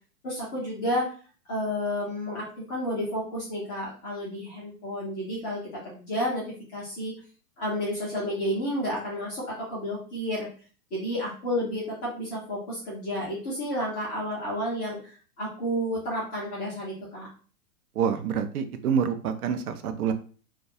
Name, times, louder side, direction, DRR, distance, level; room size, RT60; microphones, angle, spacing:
voice 1, 0.2-1.1 1.5-6.4 6.7-7.1 7.6-10.5 10.9-15.0 15.4-17.3, equal, 15° left, -7 dB, 0.3 m, -31 dB
voice 2, 18.0-20.1, right 7 dB, 75° right, 8 dB, 0.5 m, -27 dB
2.2 x 2.2 x 2.7 m, 0.39 s
hypercardioid pair, 115°, 45 cm